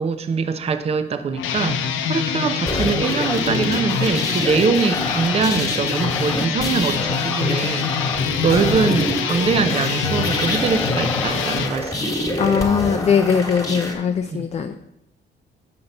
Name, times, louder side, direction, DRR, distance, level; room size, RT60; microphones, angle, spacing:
voice 1, 0.0-12.4 14.3-14.5, right 5 dB, 30° right, 0.5 m, -23 dB
sound 1, 1.3-11.7, left 7 dB, 80° left, 0.6 m, -25 dB
sound 2, 2.6-13.9, left 1 dB, 15° left, 1.4 m, -27 dB
voice 2, 12.4-14.8, left 6 dB, 35° left, 0.4 m, -20 dB
6.6 x 5.6 x 4.0 m
cardioid pair, 90°, 20 cm